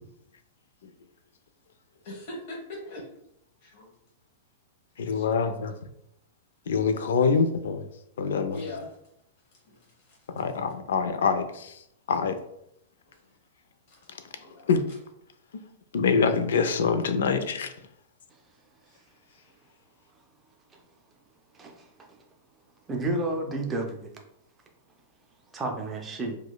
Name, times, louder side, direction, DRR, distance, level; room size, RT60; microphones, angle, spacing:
voice 1, 2.0-3.1 3.6-3.9 5.0-5.5 7.0-7.1 8.5-9.0 9.7-10.2 13.9-14.0 14.4-14.7, left 2 dB, 40° left, -2 dB, 0.9 m, -41 dB
voice 2, 5.0-5.7 6.7-7.9 8.2-8.6 10.3-11.8 12.1-12.4 14.7-14.8 15.9-17.7, left 5 dB, 90° left, 9 dB, 0.4 m, -25 dB
voice 3, 21.5-22.1 22.9-24.1 25.5-26.4, right 2 dB, 10° right, 1 dB, 0.4 m, -31 dB
4.7 x 2.1 x 2.2 m, 0.77 s
supercardioid pair, 175°, 0 cm